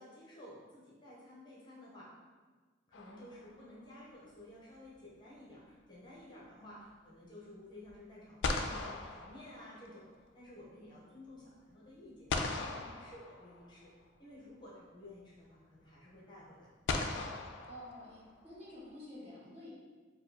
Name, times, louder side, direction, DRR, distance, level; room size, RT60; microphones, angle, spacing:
voice 1, 0.0-2.1 2.9-10.1 10.3-13.9 14.2-16.7, left 1 dB, 25° left, -6 dB, 0.7 m, -53 dB
sound 1, 2.9-3.8 7.9-8.0 8.4-10.1 12.3-13.9 15.2-15.3 16.9-18.5, left 3 dB, 80° left, 0.3 m, -38 dB
voice 2, 6.5-6.8 17.6-19.7, left 1 dB, 35° right, -8 dB, 1.2 m, -50 dB
4.9 x 2.3 x 2.7 m, 1.4 s
head